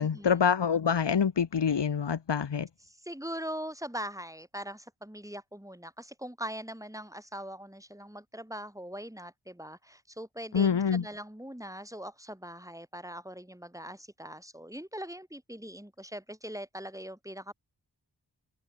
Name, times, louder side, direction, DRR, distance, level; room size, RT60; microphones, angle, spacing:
voice 1, 0.0-2.7 10.5-11.0, left 7 dB, 85° left, 0.9 m, -26 dB
voice 2, 2.9-17.5, equal, 10° right, 6.9 m, -41 dB
wide cardioid pair, 55°, 41 cm